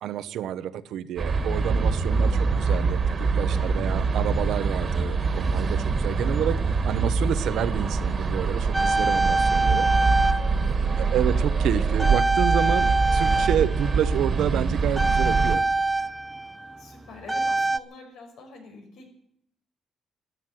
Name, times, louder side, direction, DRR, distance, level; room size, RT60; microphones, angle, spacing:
voice 1, 0.0-9.9 11.0-15.6, right 10 dB, 80° right, 14 dB, 0.9 m, -29 dB
sound 1, 1.2-15.5, right 4 dB, 35° right, 1.7 m, -24 dB
voice 2, 2.0-3.2 3.6-3.8 10.4-11.4 16.8-19.1, left 3 dB, 85° left, 4 dB, 5.6 m, -46 dB
sound 2, 8.7-11.7 12.0-17.8, right 3 dB, 5° right, 0.5 m, -25 dB
14.0 x 11.5 x 9.2 m, 0.72 s
cardioid pair, 140°, 0 cm